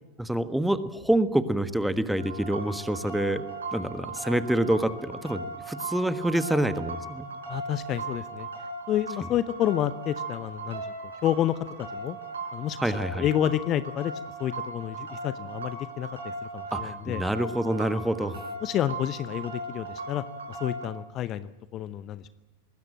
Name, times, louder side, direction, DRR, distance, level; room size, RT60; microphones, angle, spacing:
voice 1, 0.2-3.4 3.7-7.3 12.8-13.2 16.7-18.3, right 1 dB, 5° right, 13 dB, 1.4 m, -27 dB
sound 1, 2.1-20.9, right 2 dB, 70° right, 4.8 m, -38 dB
voice 2, 7.5-8.5 8.9-10.9 11.2-11.6 11.9-12.2 12.5-14.1 14.4-17.2 18.6-22.3, left 11 dB, 35° left, 15 dB, 0.8 m, -29 dB
24.5 x 20.0 x 8.9 m, 1.0 s
figure-of-eight pair, 90°, 0 cm